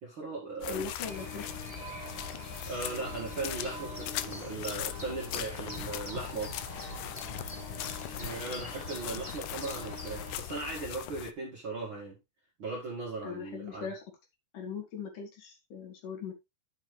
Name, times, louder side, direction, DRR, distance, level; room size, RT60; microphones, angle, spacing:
voice 1, 0.0-0.9 2.7-6.8 8.2-12.2 12.6-13.9, right 3 dB, 40° right, 2.0 m, -38 dB
Walking on wet and muddy marsh land with clothing rustle, 0.6-11.3, left 13 dB, 90° left, 1.7 m, -40 dB
voice 2, 0.7-1.6 13.2-14.0 14.5-16.3, left 6 dB, 60° left, 3.7 m, -40 dB
sound 1, 1.0-10.4, left 1 dB, 30° left, 0.6 m, -43 dB
9.7 x 7.1 x 3.3 m
omnidirectional pair, 4.4 m